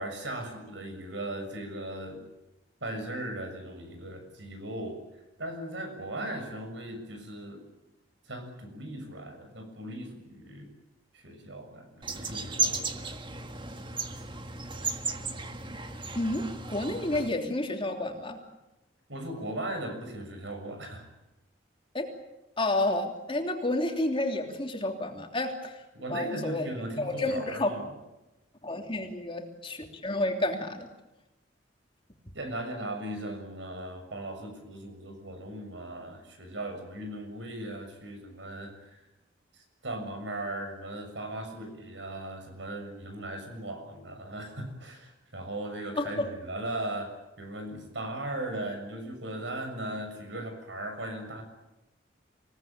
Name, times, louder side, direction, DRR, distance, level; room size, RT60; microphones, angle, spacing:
voice 1, 0.0-2.2 2.8-5.0 5.4-7.6 8.3-10.7 11.1-13.1 14.1-14.2 19.1-21.1 25.9-27.8 32.3-39.0 39.5-51.4, right 1 dB, 70° right, 6 dB, 6.8 m, -38 dB
sound 1, 12.0-17.3, right 3 dB, 25° right, 1.7 m, -34 dB
voice 2, 16.1-18.4 21.9-22.1 22.6-25.8 26.1-26.7 27.0-27.7 28.6-30.9 46.0-46.3, left 2 dB, 30° left, 3 dB, 3.1 m, -30 dB
27.0 x 18.5 x 8.9 m, 0.98 s
head